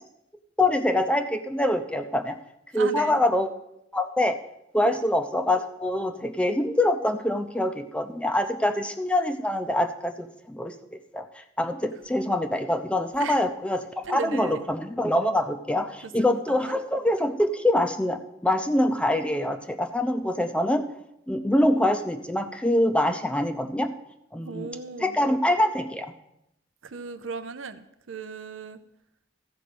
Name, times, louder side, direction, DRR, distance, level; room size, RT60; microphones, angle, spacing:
voice 1, 0.6-2.4 2.7-3.5 3.9-4.4 4.7-20.9 21.3-23.9 24.3-24.7 25.0-26.1, left 1 dB, 5° left, 7 dB, 0.6 m, -25 dB
voice 2, 2.7-3.2 4.8-5.0 13.2-13.4 14.0-14.7 16.0-16.8 24.4-25.2 26.8-28.8, right 4 dB, 80° right, 10 dB, 0.7 m, -37 dB
14.0 x 5.2 x 6.8 m, 0.81 s
head